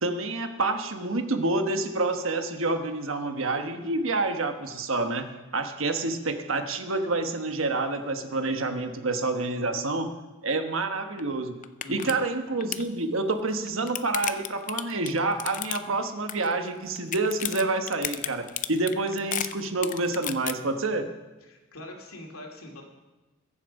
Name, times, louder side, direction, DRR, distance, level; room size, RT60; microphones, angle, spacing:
voice 1, 0.0-5.3 5.5-10.1 10.4-11.6 11.9-21.1, right 2 dB, 65° right, 7 dB, 1.2 m, -28 dB
sound 1, 11.2-11.3 11.6-12.1 12.4-12.9 13.5-16.0 16.3-16.7 17.0-20.5, left 10 dB, 35° left, 0.5 m, -32 dB
voice 2, 11.8-12.2 21.4-22.8, left 1 dB, 80° left, 1 dB, 2.7 m, -43 dB
22.0 x 7.4 x 5.3 m, 1.2 s
head